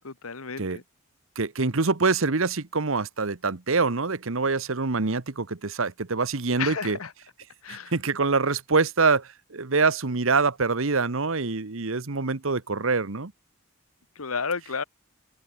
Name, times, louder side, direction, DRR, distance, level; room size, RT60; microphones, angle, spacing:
voice 1, 0.0-0.8 6.6-7.1 7.6-7.9 14.2-14.8, left 5 dB, 85° left, 1.4 m, -32 dB
voice 2, 1.4-7.0 7.7-13.3, right 4 dB, 70° right, 1.2 m, -25 dB
open air
head